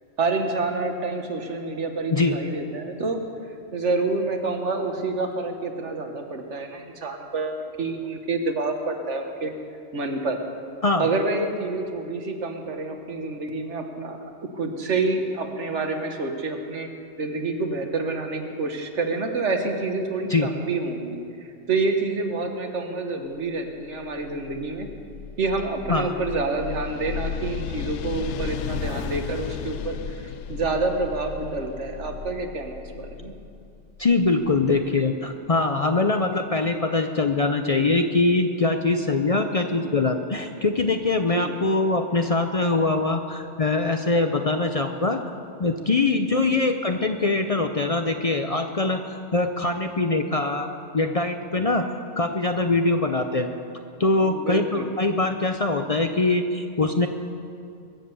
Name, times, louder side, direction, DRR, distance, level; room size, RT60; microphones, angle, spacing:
voice 1, 0.2-3.2 3.7-9.5 9.9-10.4 11.0-16.9 17.2-24.9 25.4-33.3 41.3-41.5 46.3-46.7 54.2-54.9, right 3 dB, 80° right, 4 dB, 1.6 m, -28 dB
sound 1, 24.1-34.8, left 7 dB, 80° left, 0.9 m, -35 dB
voice 2, 34.0-45.2 45.6-50.7 50.9-51.9 52.2-53.5 54.0-57.1, left 3 dB, 40° left, 6 dB, 0.6 m, -23 dB
23.0 x 7.7 x 6.9 m, 2.4 s
omnidirectional pair, 1.2 m